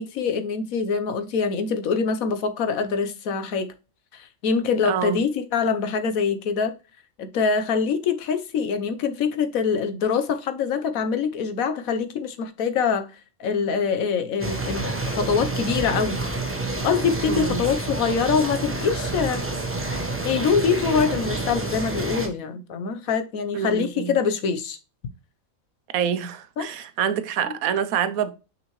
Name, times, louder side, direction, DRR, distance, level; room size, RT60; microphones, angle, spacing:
voice 1, 0.0-3.7 4.1-6.7 7.2-13.1 13.4-16.2 16.8-19.4 20.2-24.8 26.6-26.7, left 6 dB, 80° left, 1.3 m, -24 dB
voice 2, 4.9-5.2 17.3-17.6 23.5-24.1 25.9-28.3, right 8 dB, 85° right, 1.2 m, -26 dB
sound 1, 14.4-22.3, right 2 dB, 10° right, 1.0 m, -28 dB
6.1 x 5.5 x 3.0 m
omnidirectional pair, 1.4 m